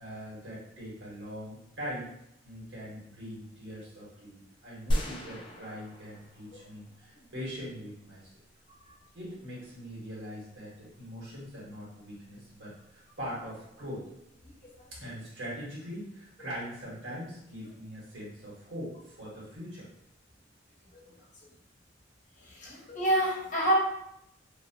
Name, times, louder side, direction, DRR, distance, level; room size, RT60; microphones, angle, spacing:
voice 1, 0.0-2.1 2.4-8.3 9.1-14.0 15.0-19.9, equal, 85° right, -7 dB, 1.4 m, -42 dB
sound 1, 4.9-7.2, equal, 25° left, 0.4 m, -34 dB
voice 2, 22.5-23.7, right 1 dB, 45° left, -5 dB, 0.9 m, -27 dB
2.7 x 2.5 x 2.8 m, 0.78 s
head